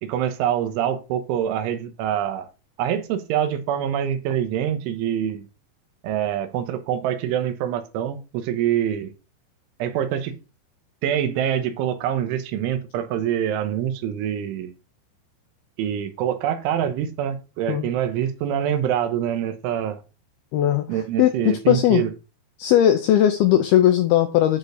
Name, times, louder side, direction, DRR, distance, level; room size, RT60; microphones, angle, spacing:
voice 1, 0.0-2.5 2.8-5.5 6.0-9.1 9.8-10.4 11.0-14.7 15.8-20.0 20.9-22.1, right 10 dB, 90° right, 3.6 m, -25 dB
voice 2, 20.5-20.9 21.2-22.0 22.6-24.6, left 11 dB, 85° left, 2.2 m, -18 dB
10.5 x 4.2 x 6.6 m
omnidirectional pair, 5.4 m